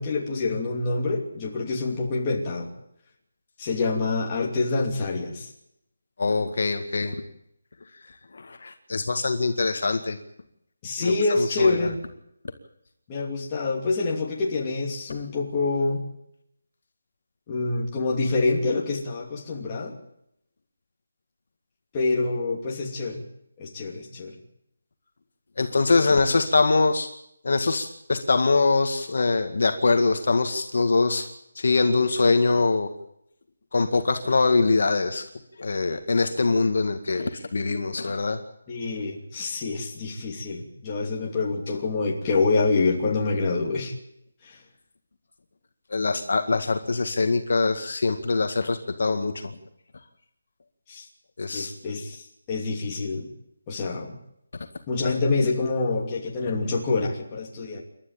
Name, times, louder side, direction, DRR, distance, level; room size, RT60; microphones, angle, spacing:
voice 1, 0.0-2.7 3.6-5.5 10.8-12.0 13.1-16.0 17.5-19.9 21.9-23.2 23.6-24.3 38.7-43.9 44.4-44.6 50.9-51.0 51.5-53.3 53.7-54.2 54.9-57.8, left 3 dB, 15° left, -2 dB, 2.8 m, -26 dB
voice 2, 6.2-7.2 8.3-10.2 11.0-11.8 25.6-27.1 27.4-31.3 31.6-32.9 33.7-35.2 35.6-38.4 45.9-49.6 51.4-51.7, left 3 dB, 45° left, 6 dB, 2.0 m, -23 dB
28.5 x 13.0 x 8.9 m, 0.75 s
hypercardioid pair, 180°, 0 cm